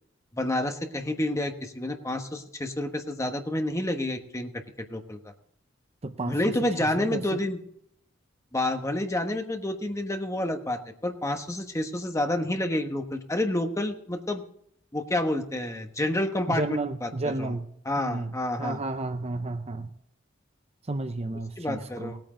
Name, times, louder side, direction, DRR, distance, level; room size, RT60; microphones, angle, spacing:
voice 1, 0.3-4.5 4.9-5.2 6.3-7.6 8.5-14.4 14.9-16.6 17.0-17.1 17.4-17.5 17.9-18.8 21.6-22.2, left 1 dB, 15° left, 5 dB, 1.2 m, -29 dB
voice 2, 6.0-7.4 16.5-17.7 18.0-19.9 20.8-22.2, right 2 dB, 35° right, 9 dB, 0.7 m, -32 dB
19.5 x 8.9 x 3.8 m, 0.72 s
head